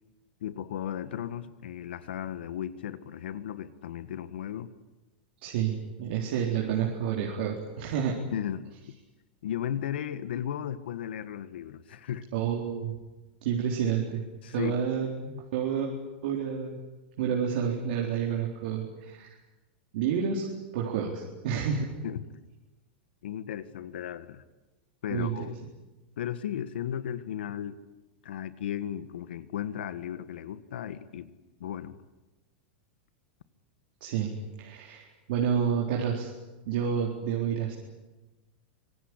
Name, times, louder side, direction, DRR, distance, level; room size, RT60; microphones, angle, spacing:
voice 1, 0.4-4.8 8.3-9.0 9.4-12.3 14.4-14.7 22.0-22.2 23.2-24.4 25.0-25.5 26.2-27.8 28.2-31.3 31.6-32.0, left 10 dB, 85° left, 14 dB, 1.7 m, -35 dB
voice 2, 5.4-8.2 12.3-13.0 13.4-15.9 16.2-16.8 17.2-19.4 19.9-20.5 20.7-21.9 25.1-25.5 34.0-34.3 34.6-36.3 36.7-37.7, right 7 dB, 65° right, -1 dB, 4.1 m, -29 dB
25.5 x 19.0 x 9.9 m, 1.1 s
supercardioid pair, 140°, 5 cm